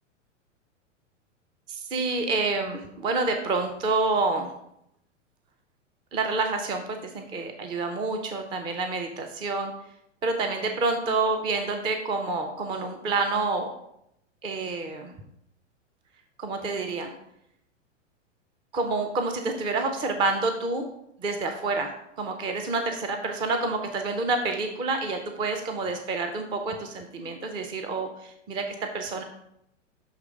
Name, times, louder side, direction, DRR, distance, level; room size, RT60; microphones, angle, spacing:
voice 1, 1.7-4.5 6.1-9.7 10.2-13.7 14.4-15.1 16.4-17.1 18.7-20.9 21.2-21.9 22.2-29.2, right 3 dB, 15° right, 5 dB, 0.4 m, -28 dB
6.4 x 3.2 x 4.8 m, 0.77 s
hypercardioid pair, 100°, 37 cm